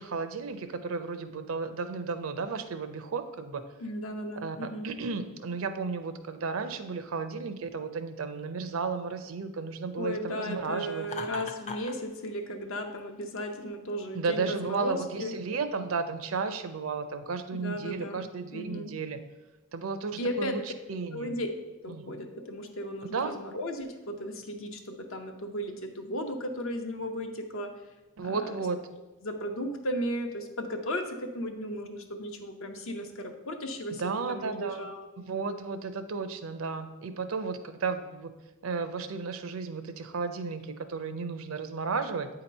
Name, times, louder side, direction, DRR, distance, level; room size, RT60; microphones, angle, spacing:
voice 1, 0.0-3.6 4.4-11.1 14.1-19.2 19.7-20.6 20.9-21.4 21.9-22.1 23.1-23.4 28.2-28.8 34.0-34.9 35.2-38.3 38.6-42.3, right 4 dB, 65° right, 9 dB, 0.5 m, -33 dB
voice 2, 3.8-4.9 10.0-15.3 17.5-18.2 18.5-18.9 20.2-20.6 21.1-21.5 21.8-27.8 28.2-28.6 29.2-35.1, equal, 65° left, 5 dB, 0.8 m, -35 dB
Laughter, 11.0-12.0, left 4 dB, 30° left, 0.5 m, -38 dB
8.4 x 2.9 x 5.3 m, 1.1 s
head